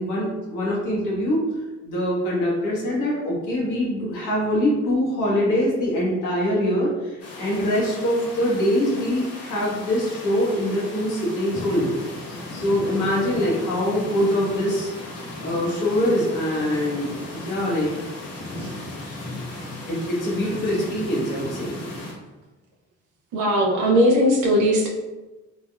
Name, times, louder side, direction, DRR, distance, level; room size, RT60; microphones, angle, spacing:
voice 1, 0.0-1.5 1.8-12.0 12.5-14.9 15.4-18.1 19.9-21.8, equal, 85° left, -5 dB, 1.1 m, -24 dB
sound 1, 7.2-22.1, left 2 dB, 55° left, 0.8 m, -36 dB
voice 2, 23.3-24.9, equal, 90° right, -1 dB, 0.6 m, -19 dB
3.3 x 2.3 x 2.3 m, 1.1 s
cardioid pair, 90°, 30 cm